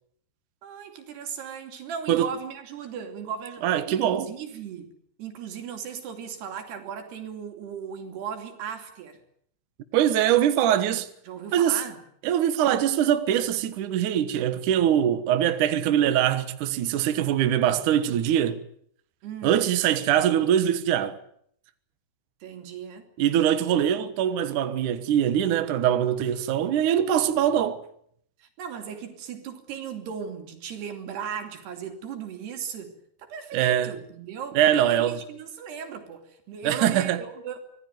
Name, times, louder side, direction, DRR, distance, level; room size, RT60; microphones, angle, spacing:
voice 1, 0.6-4.9 5.2-9.2 11.3-12.0 19.2-19.6 22.4-23.1 28.4-37.6, right 7 dB, 85° right, 5.0 m, -37 dB
voice 2, 3.6-4.3 9.9-11.1 11.5-11.8 12.2-18.6 19.4-21.2 23.2-27.8 33.5-33.9 34.5-35.2 36.6-37.2, right 10 dB, 60° right, 2.5 m, -23 dB
25.5 x 17.5 x 9.3 m
omnidirectional pair, 4.6 m